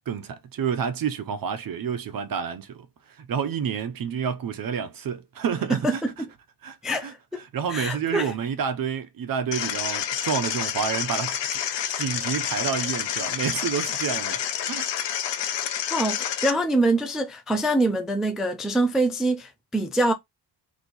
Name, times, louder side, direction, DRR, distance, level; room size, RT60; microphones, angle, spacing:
voice 1, 0.1-6.0 6.6-6.8 7.0-7.1 7.5-11.4 11.8-14.9, right 7 dB, 55° right, 0.6 m, -29 dB
voice 2, 5.7-6.3 6.8-7.4 7.7-8.3 15.9-20.1, right 1 dB, ahead, 0.3 m, -25 dB
sound 1, 9.5-16.5, left 10 dB, 80° left, 0.7 m, -29 dB
3.1 x 2.7 x 4.0 m
wide cardioid pair, 160°, 42 cm